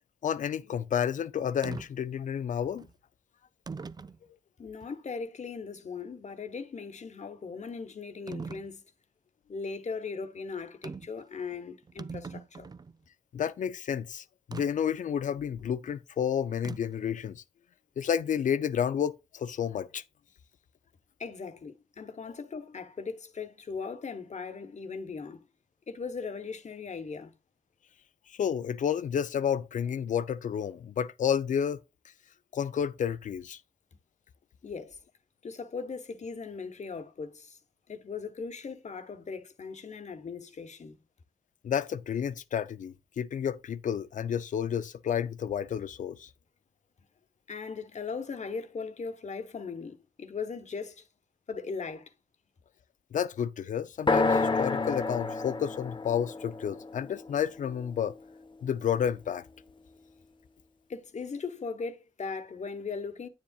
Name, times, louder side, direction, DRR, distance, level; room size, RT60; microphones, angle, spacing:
voice 1, 0.2-2.9 13.3-17.4 18.0-20.0 28.3-31.8 32.5-33.6 41.6-46.3 53.1-58.1 58.6-59.4, left 8 dB, 85° left, 0.4 m, -30 dB
sound 1, 1.6-1.9 2.8-2.9 3.7-4.2 4.8-4.9 8.3-8.7 10.8-11.2 11.5-11.6 11.8-12.9 14.5-14.7 16.6-17.0, right 4 dB, 30° right, 0.4 m, -40 dB
voice 2, 4.6-8.8 9.5-12.7 21.2-25.5 25.9-27.3 34.6-35.0 35.4-37.6 37.9-41.0 47.5-51.1 51.5-52.1 60.9-63.3, left 5 dB, 65° left, 1.0 m, -39 dB
sound 2, 54.1-58.0, left 3 dB, 40° left, 0.8 m, -29 dB
9.0 x 7.2 x 2.3 m
cardioid pair, 45°, 13 cm